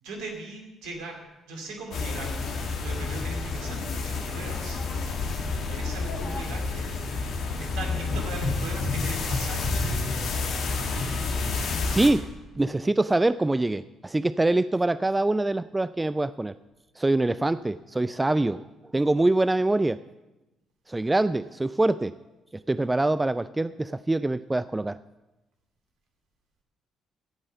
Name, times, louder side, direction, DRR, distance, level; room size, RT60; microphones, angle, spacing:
voice 1, 0.0-1.2 1.5-4.9 5.7-6.9 7.6-9.7, right 3 dB, 70° right, 2 dB, 2.4 m, -39 dB
sound 1, 1.9-12.1, left 3 dB, 65° left, 1.7 m, -29 dB
voice 2, 11.9-12.3 12.6-16.5 17.0-18.7 18.9-20.0 20.9-22.1 22.7-25.0, right 2 dB, 20° right, 15 dB, 0.3 m, -24 dB
15.0 x 5.4 x 7.2 m, 1.0 s
hypercardioid pair, 45°, 0 cm